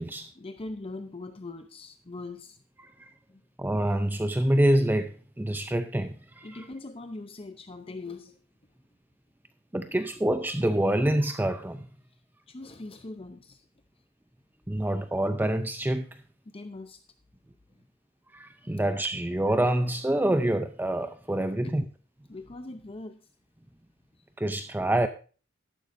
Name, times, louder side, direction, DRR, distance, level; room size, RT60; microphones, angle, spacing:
voice 1, 0.1-2.6 3.3-3.4 6.4-8.4 12.5-13.7 16.5-17.0 18.6-18.8 21.6-21.8 22.3-23.3 24.2-24.3, left 2 dB, 30° left, 9 dB, 0.7 m, -41 dB
voice 2, 3.6-6.6 9.7-11.9 14.7-16.0 18.3-21.8 24.4-25.1, right 1 dB, 10° right, 9 dB, 0.5 m, -26 dB
13.5 x 12.0 x 2.6 m, 0.36 s
head